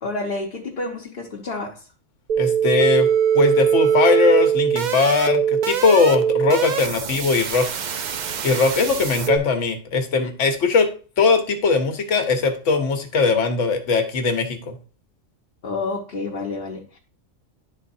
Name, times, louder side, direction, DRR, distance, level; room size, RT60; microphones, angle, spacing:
voice 1, 0.0-1.9 15.6-17.0, left 3 dB, 45° left, 1.0 m, -29 dB
sound 1, 2.3-9.4, right 8 dB, 60° right, 0.4 m, -21 dB
voice 2, 2.4-3.1 3.3-7.7 8.4-10.9 11.2-14.8, left 4 dB, 70° left, 1.3 m, -20 dB
11.0 x 4.0 x 2.7 m
omnidirectional pair, 1.4 m